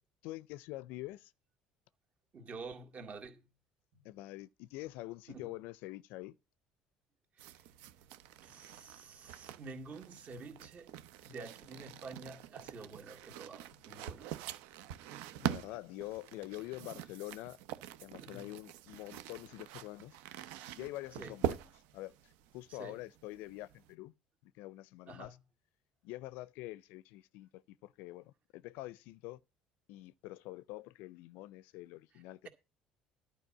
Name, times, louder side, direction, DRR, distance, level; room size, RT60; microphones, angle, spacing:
voice 1, 0.2-1.3 4.0-6.4 15.4-17.6 18.0-20.2 20.7-21.6 21.9-24.1 24.4-25.4 26.0-29.4 29.9-32.5, left 17 dB, 70° left, 0.5 m, -46 dB
voice 2, 2.3-3.5 3.9-4.0 5.3-5.5 7.5-7.6 8.4-10.9 11.2-14.4 18.2-18.5 21.2-21.4 22.7-23.0 25.1-25.4, right 3 dB, 45° right, 2.0 m, -49 dB
sound 1, 7.4-23.9, right 11 dB, 75° right, 0.7 m, -44 dB
11.5 x 5.1 x 7.3 m
hypercardioid pair, 65°, 3 cm